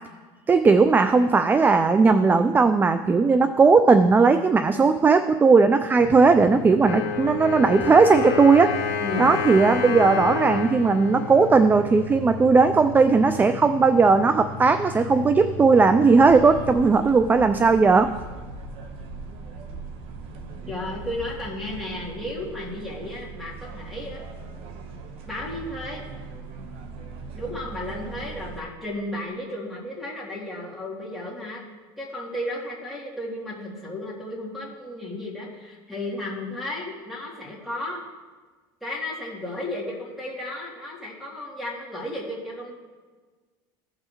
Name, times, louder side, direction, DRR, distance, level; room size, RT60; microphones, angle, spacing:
voice 1, 0.5-8.7 9.2-18.1, right 4 dB, 15° right, 10 dB, 0.3 m, -17 dB
sound 1, 6.0-16.9, left 3 dB, 15° left, 1.5 m, -38 dB
Wind instrument woodwind instrument, 6.8-12.5, left 6 dB, 60° left, 1.9 m, -29 dB
voice 2, 9.0-9.4 20.7-24.2 25.3-26.0 27.3-31.6 32.0-38.0 38.8-42.8, left 1 dB, ahead, -4 dB, 2.7 m, -33 dB
sound 2, 16.2-28.6, right 4 dB, 55° right, 1.1 m, -39 dB
16.0 x 5.6 x 3.0 m, 1.4 s
supercardioid pair, 115°, 11 cm